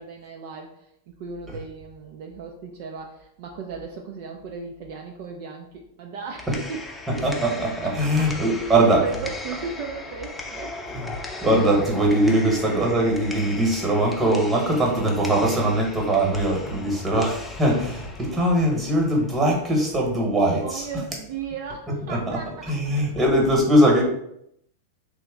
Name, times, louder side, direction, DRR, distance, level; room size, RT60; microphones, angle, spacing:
voice 1, 0.0-6.8 7.8-8.3 8.6-10.7 16.7-17.0 20.6-22.7, right 5 dB, 55° right, 2 dB, 0.4 m, -36 dB
sound 1, 6.2-20.2, left 2 dB, 5° left, 0.6 m, -38 dB
voice 2, 7.2-9.0 10.9-20.8 22.1-22.4 22.7-24.0, right 1 dB, 15° right, -1 dB, 1.1 m, -21 dB
2.9 x 2.1 x 3.6 m, 0.75 s
hypercardioid pair, 100°, 0 cm